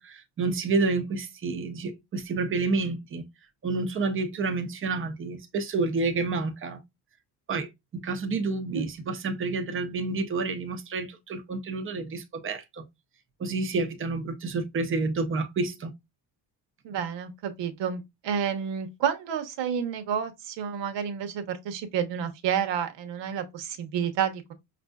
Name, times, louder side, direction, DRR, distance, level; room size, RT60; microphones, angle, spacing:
voice 1, 0.0-3.2 3.6-6.8 7.5-12.8 13.4-15.9, right 3 dB, 30° right, 0.6 m, -29 dB
voice 2, 16.8-24.5, right 8 dB, 85° right, 1.1 m, -30 dB
5.9 x 2.6 x 2.3 m
cardioid pair, 170°, 43 cm